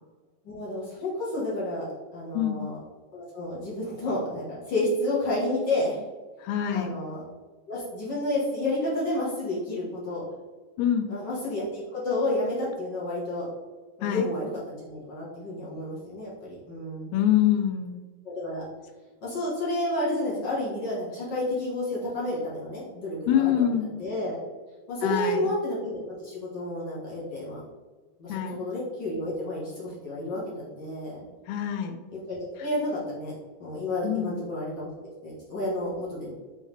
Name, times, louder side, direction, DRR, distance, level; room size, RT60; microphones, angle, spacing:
voice 1, 0.4-1.9 2.1-2.8 3.1-6.0 6.7-7.2 7.7-10.2 11.1-13.5 14.0-17.1 18.2-18.6 19.2-23.7 24.0-24.4 24.9-27.6 28.2-31.2 32.1-33.3 33.6-36.3, left 1 dB, 45° left, -7 dB, 1.5 m, -30 dB
voice 2, 6.4-7.0 10.8-11.1 14.0-14.3 17.1-18.0 23.3-23.9 25.0-25.5 28.3-28.7 31.5-32.0 34.0-34.4, left 10 dB, 80° left, 7 dB, 2.5 m, -25 dB
7.6 x 3.7 x 3.5 m, 1.3 s
omnidirectional pair, 4.7 m